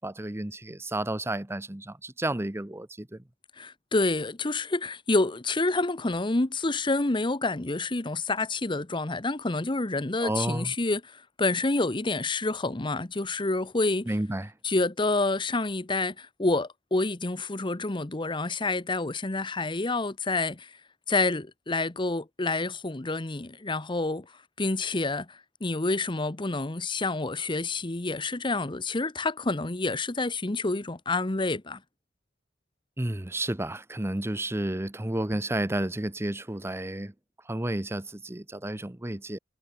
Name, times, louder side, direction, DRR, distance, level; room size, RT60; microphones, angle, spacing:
voice 1, 0.0-3.2 10.2-10.7 14.1-14.5 33.0-37.1 37.5-39.4, right 1 dB, 15° right, 0.8 m, -31 dB
voice 2, 3.6-14.1 14.6-20.7 21.1-24.3 24.6-31.8, left 2 dB, 25° left, 1.0 m, -28 dB
head